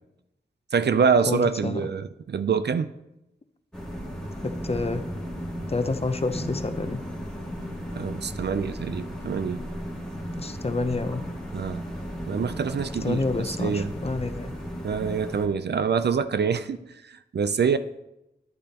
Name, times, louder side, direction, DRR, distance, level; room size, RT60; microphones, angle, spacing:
voice 1, 0.7-2.9 7.9-9.6 11.5-11.8 12.3-13.9 14.8-17.8, right 6 dB, 65° right, 0.5 m, -25 dB
voice 2, 1.3-1.9 4.4-5.1 5.7-7.0 10.4-11.2 13.0-14.5, left 3 dB, 35° left, 0.7 m, -28 dB
sound 1, 3.7-15.5, equal, 5° left, 2.1 m, -35 dB
10.5 x 8.4 x 2.9 m
wide cardioid pair, 60°, 19 cm